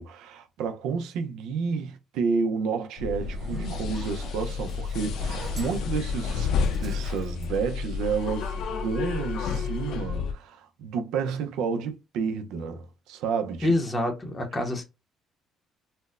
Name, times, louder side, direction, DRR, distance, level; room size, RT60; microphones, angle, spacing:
voice 1, 0.0-6.5 6.8-13.7, right 5 dB, 85° right, 0.5 m, -30 dB
sound 1, 3.0-10.3, left 5 dB, 65° left, 0.5 m, -30 dB
Zipper (clothing), 3.1-8.4, right 2 dB, 30° right, 1.4 m, -44 dB
voice 2, 13.6-14.8, left 1 dB, 15° left, 0.6 m, -26 dB
4.2 x 2.1 x 2.4 m
cardioid pair, 165°, 0 cm